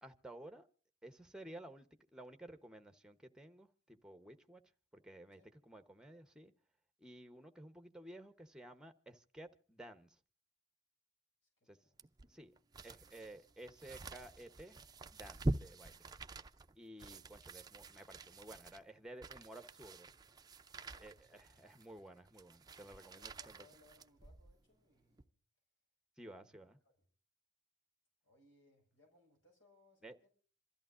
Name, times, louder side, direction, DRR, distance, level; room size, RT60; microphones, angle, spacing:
voice 1, 0.0-0.7 1.0-4.6 4.9-5.4 5.7-6.5 7.0-10.2 11.7-11.8 12.3-12.5 12.8-14.8 15.1-16.0 16.8-20.1 21.0-23.6 26.2-26.8 30.0-30.2, right 1 dB, 5° right, 1.0 m, -54 dB
voice 2, 11.4-12.1 20.9-21.6 23.0-25.3 26.3-27.1 28.2-30.3, left 2 dB, 75° left, 6.4 m, -70 dB
sound 1, 12.0-24.6 25.1-25.2, right 2 dB, 20° right, 0.6 m, -46 dB
27.0 x 13.5 x 2.6 m
head